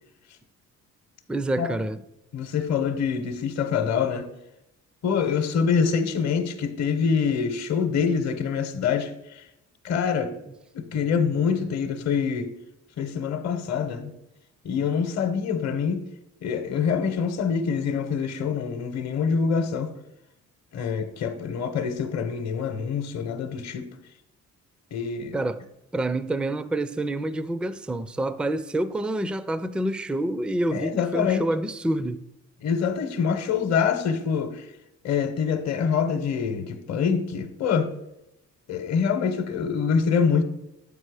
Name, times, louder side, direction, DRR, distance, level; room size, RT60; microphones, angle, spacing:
voice 1, 1.3-2.0 25.3-25.6 25.9-32.2, right 1 dB, 5° right, 0.3 m, -27 dB
voice 2, 2.3-4.3 5.0-9.5 9.8-10.3 10.7-12.5 13.0-14.1 14.6-16.0 16.4-19.9 20.7-23.9 24.9-25.4 30.7-31.5 32.6-34.7 35.0-37.9 38.7-40.4, left 6 dB, 60° left, 0.9 m, -25 dB
7.4 x 5.5 x 4.8 m
cardioid pair, 90°, 30 cm